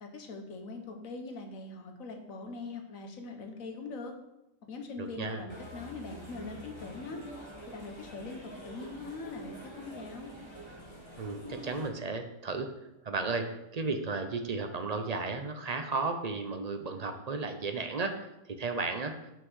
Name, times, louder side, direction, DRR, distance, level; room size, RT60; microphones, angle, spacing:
voice 1, 0.0-4.1 4.7-7.2 7.7-10.3, left 3 dB, 70° left, 4 dB, 1.5 m, -42 dB
voice 2, 5.0-5.4 11.2-12.7 13.0-13.5 13.7-18.2 18.6-19.2, right 3 dB, 45° right, 6 dB, 0.5 m, -34 dB
sound 1, 5.5-11.9, equal, 20° left, 1.2 m, -46 dB
6.0 x 5.4 x 6.2 m, 0.90 s
omnidirectional pair, 1.5 m